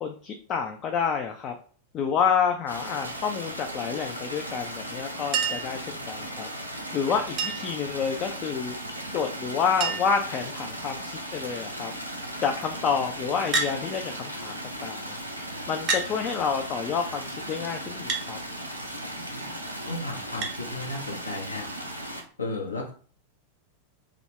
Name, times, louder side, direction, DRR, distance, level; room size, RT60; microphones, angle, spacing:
voice 1, 0.0-1.5 1.9-5.8 6.1-6.5 6.9-8.8 9.1-11.9 12.4-14.6 14.8-15.2 15.7-18.4, left 6 dB, 35° left, 4 dB, 0.3 m, -28 dB
sound 1, 2.7-22.2, right 1 dB, 90° right, 0.4 m, -37 dB
Chink clink, 5.3-5.8 7.4-7.8 9.2-9.3 9.5-9.6 9.8-10.3 11.0-11.4 13.5-13.8 14.8-14.9 15.9-16.1 18.1-18.3 20.4-20.6 22.0-22.1, right 4 dB, 35° right, 0.5 m, -28 dB
voice 2, 19.8-21.6 22.4-22.9, left 2 dB, 75° left, 2 dB, 0.6 m, -34 dB
2.4 x 2.0 x 3.4 m, 0.42 s
figure-of-eight pair, 90°, 0 cm